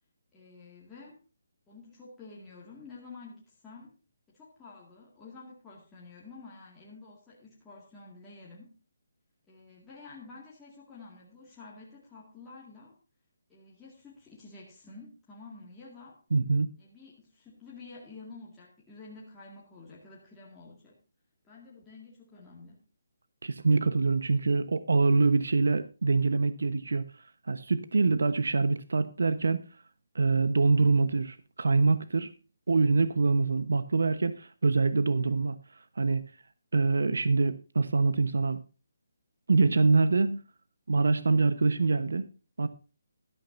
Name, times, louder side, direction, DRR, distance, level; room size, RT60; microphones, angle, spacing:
voice 1, 0.3-1.2 1.7-3.9 4.3-8.7 9.5-12.9 13.5-16.2 16.8-21.0 21.4-22.8, left 3 dB, 5° left, -7 dB, 2.1 m, -50 dB
voice 2, 16.3-16.7 23.4-27.0 27.5-29.6 30.1-32.3 32.7-35.6 36.0-36.2 36.7-38.6 39.5-40.4 40.9-42.3 42.6-42.7, right 3 dB, 80° right, 12 dB, 1.1 m, -25 dB
13.0 x 12.5 x 2.6 m, 0.33 s
hypercardioid pair, 175°, 0 cm